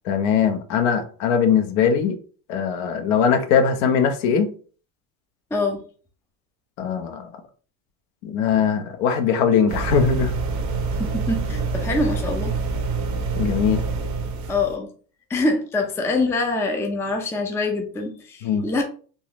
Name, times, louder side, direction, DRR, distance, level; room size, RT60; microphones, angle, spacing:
voice 1, 0.0-2.2 2.5-4.5 6.8-7.3 8.2-10.3 13.4-13.8 18.4-18.7, left 7 dB, 70° left, 0.9 m, -20 dB
voice 2, 5.5-5.8 11.0-12.5 14.5-14.9 15.3-18.8, left 2 dB, 5° left, 0.5 m, -24 dB
sound 1, 9.7-14.8, right 4 dB, 40° right, 0.7 m, -26 dB
3.9 x 2.5 x 3.0 m
supercardioid pair, 115°, 47 cm